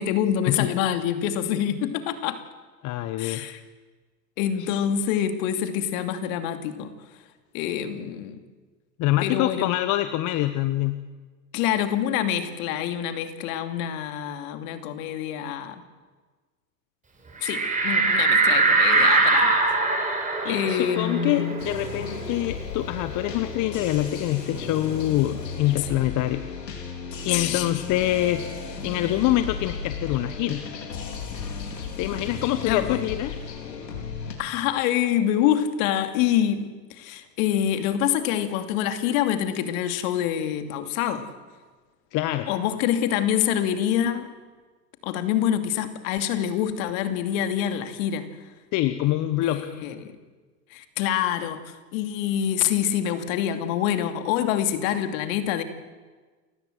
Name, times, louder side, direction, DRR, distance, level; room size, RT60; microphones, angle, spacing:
voice 1, 0.0-2.4 3.2-3.6 4.4-6.9 7.5-8.4 9.2-9.7 11.5-15.8 17.4-19.6 20.5-21.6 25.8-25.9 27.3-27.7 32.7-33.0 34.4-41.3 42.5-44.3 45.0-48.3 49.4-50.1 50.7-55.6, left 10 dB, 55° left, 8 dB, 2.7 m, -26 dB
voice 2, 2.8-3.5 4.6-4.7 9.0-11.0 20.4-26.4 27.2-28.4 28.8-30.6 32.0-33.3 42.1-42.5 48.7-49.7, left 14 dB, 40° left, 11 dB, 1.1 m, -25 dB
sound 1, 17.4-22.6 23.0-23.1 23.4-25.1, right 3 dB, 15° right, 5.0 m, -22 dB
sound 2, 21.6-34.3, left 5 dB, 85° left, 4.3 m, -35 dB
29.0 x 15.5 x 8.0 m, 1.4 s
hypercardioid pair, 105°, 49 cm